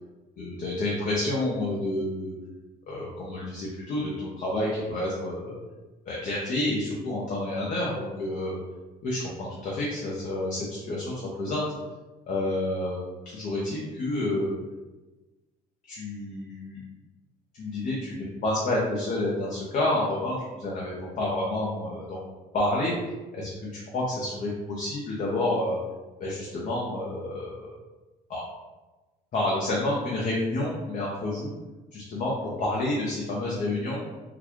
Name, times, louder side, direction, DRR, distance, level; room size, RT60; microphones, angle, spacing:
voice 1, 0.4-2.3 2.9-5.5 6.1-8.6 9.0-11.7 12.3-14.5 15.9-16.8 17.5-22.2 22.5-22.9 23.3-25.8 26.2-27.7 28.3-28.4 29.3-31.6 31.9-34.0, left 1 dB, 50° left, -5 dB, 0.8 m, -29 dB
3.8 x 2.4 x 3.0 m, 1.2 s
cardioid pair, 110°, 17 cm